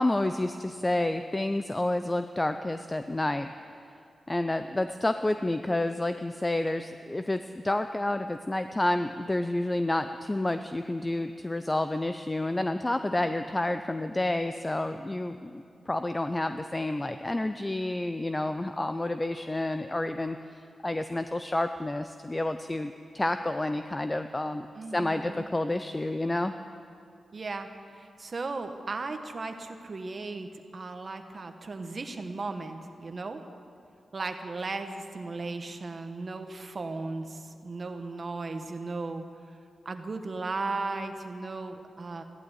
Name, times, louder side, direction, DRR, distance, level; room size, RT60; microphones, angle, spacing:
voice 1, 0.0-3.5 4.3-24.7 24.9-26.5, left 1 dB, 20° left, 9 dB, 0.5 m, -29 dB
voice 2, 24.7-25.5 27.3-27.7 27.9-33.4 34.1-39.2 39.8-42.2, right 3 dB, 45° right, 6 dB, 1.2 m, -36 dB
15.0 x 11.5 x 8.2 m, 2.5 s
wide cardioid pair, 95°, 0 cm